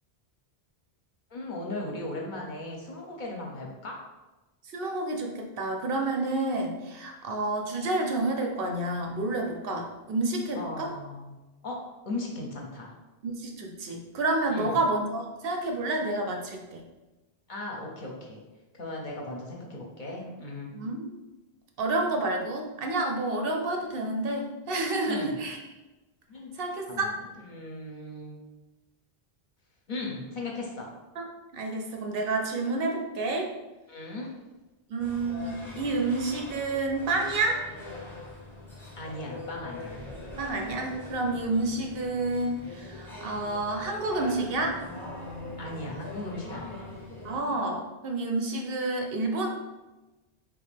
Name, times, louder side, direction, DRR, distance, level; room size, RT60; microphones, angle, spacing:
voice 1, 1.3-3.9 10.5-11.8 12.1-12.9 14.5-14.8 17.5-18.4 18.7-20.7 25.1-25.4 26.3-26.6 26.9-27.1 27.4-28.4 29.9-30.9 33.9-34.3 39.0-40.0 45.6-46.9, left 2 dB, 55° left, -1 dB, 0.7 m, -37 dB
voice 2, 4.7-10.9 13.2-16.8 20.7-21.1 21.8-25.6 26.6-27.1 31.2-31.3 31.5-33.5 34.9-37.6 40.4-44.8 47.2-49.5, right 2 dB, 70° right, 2 dB, 0.7 m, -29 dB
sound 1, 35.0-47.4, left 2 dB, 5° left, 0.6 m, -42 dB
3.3 x 2.5 x 3.3 m, 1.1 s
omnidirectional pair, 1.1 m